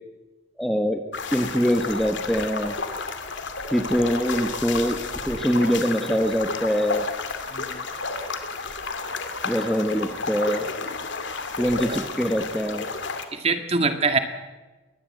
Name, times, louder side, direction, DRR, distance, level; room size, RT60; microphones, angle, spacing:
voice 1, 0.6-1.0 1.3-2.7 3.7-5.0 5.3-7.0 9.4-10.6 11.6-12.9, equal, ahead, 5 dB, 1.2 m, -23 dB
sound 1, 1.1-13.2, left 4 dB, 65° left, 2.4 m, -31 dB
voice 2, 13.3-14.2, right 4 dB, 30° right, 7 dB, 2.1 m, -24 dB
22.5 x 19.5 x 7.9 m, 1.2 s
head